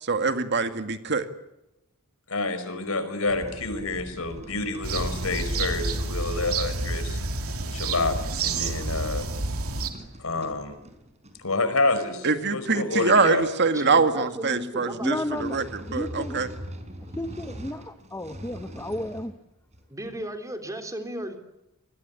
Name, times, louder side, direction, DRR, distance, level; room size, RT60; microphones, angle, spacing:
voice 1, 0.0-1.3 12.2-16.5, right 4 dB, 55° right, 8 dB, 2.1 m, -24 dB
voice 2, 2.3-7.2 7.7-8.2 8.4-9.3 10.2-10.7 11.4-13.4 13.8-13.9, left 3 dB, 75° left, 10 dB, 5.2 m, -28 dB
sound 1, 3.3-11.5 15.1-19.3 19.7-20.3, equal, 30° right, 5.2 m, -43 dB
sound 2, 4.8-9.9, right 3 dB, 80° right, 2.9 m, -29 dB
voice 3, 13.7-15.1 19.9-21.4, right 1 dB, 15° right, 6 dB, 3.5 m, -35 dB
voice 4, 15.0-16.4 17.1-19.3, left 1 dB, 15° left, 9 dB, 1.1 m, -33 dB
28.0 x 21.0 x 8.4 m, 0.90 s
head